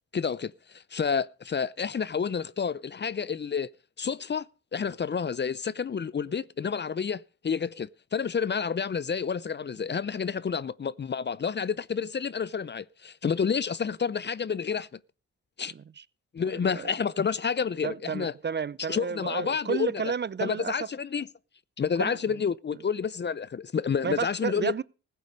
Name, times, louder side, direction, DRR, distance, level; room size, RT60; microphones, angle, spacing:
voice 1, 0.1-3.7 4.0-4.4 4.7-14.9 15.6-15.7 16.3-18.3 18.9-20.0 20.4-21.3 21.8-24.7, left 6 dB, 35° left, 0.6 m, -29 dB
voice 2, 17.8-20.7 22.0-22.2 24.0-24.8, right 6 dB, 35° right, 0.5 m, -31 dB
16.0 x 8.3 x 5.2 m
supercardioid pair, 50°, 31 cm